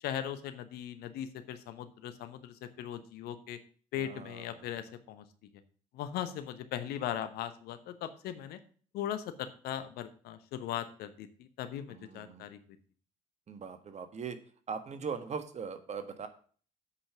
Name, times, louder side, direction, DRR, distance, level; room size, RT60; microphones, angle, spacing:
voice 1, 0.0-3.6 3.9-5.3 5.9-8.6 8.9-12.6, left 10 dB, 60° left, 10 dB, 1.0 m, -39 dB
voice 2, 4.0-4.7 11.9-12.5 13.5-14.4 14.7-16.3, right 6 dB, 40° right, 9 dB, 1.5 m, -40 dB
8.4 x 5.7 x 6.9 m, 0.43 s
figure-of-eight pair, 50°, 18 cm